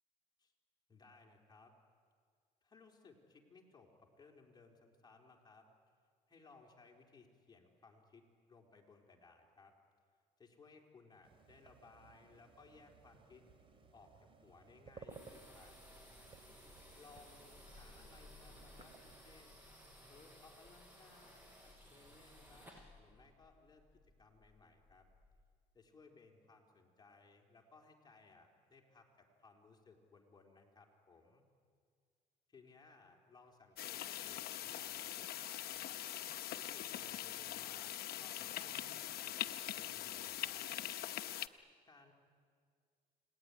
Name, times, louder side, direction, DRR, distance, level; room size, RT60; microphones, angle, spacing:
voice 1, 0.9-1.7 2.6-5.7 6.3-9.7 10.4-13.5 13.9-15.8 16.9-19.0 19.2-19.6 20.1-23.9 24.2-25.1 25.7-31.4 32.5-40.6 41.9-42.1, left 4 dB, 25° left, 1 dB, 3.9 m, -63 dB
sound 1, 11.2-19.2, right 4 dB, 30° right, 2.9 m, -60 dB
sound 2, 15.1-25.4, left 1 dB, 10° right, 6.8 m, -59 dB
sound 3, 33.8-41.5, left 12 dB, 65° left, 1.0 m, -43 dB
29.5 x 19.5 x 9.8 m, 2.1 s
cardioid pair, 110°, 17 cm